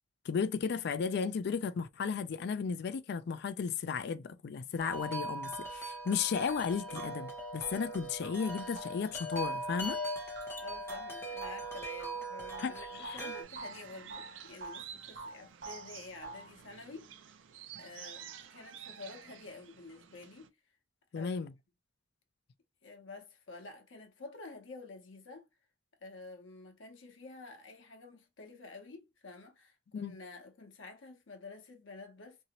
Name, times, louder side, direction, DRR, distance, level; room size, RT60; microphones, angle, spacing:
voice 1, 0.3-10.0 12.6-13.2 21.1-21.5 29.9-30.1, left 6 dB, 60° left, 0.4 m, -34 dB
Wind chime, 4.8-13.4, right 1 dB, 15° left, 1.0 m, -40 dB
sound 1, 6.4-6.5 6.9-13.3 13.6-14.9 15.2-16.6, right 2 dB, 55° right, 1.2 m, -48 dB
voice 2, 10.6-17.1 17.8-20.5 21.1-21.5 22.8-25.5 26.0-32.4, left 3 dB, 90° left, 0.8 m, -49 dB
sound 2, 12.9-20.5, right 9 dB, 80° right, 0.4 m, -51 dB
2.8 x 2.7 x 2.9 m
head